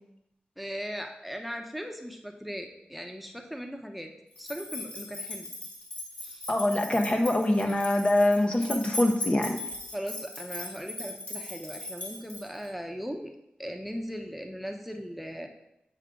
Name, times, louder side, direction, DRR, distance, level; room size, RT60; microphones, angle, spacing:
voice 1, 0.6-4.1 4.4-5.5 6.2-6.5 9.9-13.3 13.6-15.5, equal, ahead, 4 dB, 0.8 m, -38 dB
sound 1, 4.4-12.7, left 1 dB, 50° left, 2.5 m, -39 dB
voice 2, 6.5-9.6, left 1 dB, 35° left, 4 dB, 0.8 m, -24 dB
8.2 x 4.9 x 3.7 m, 0.85 s
cardioid pair, 65°, 3 cm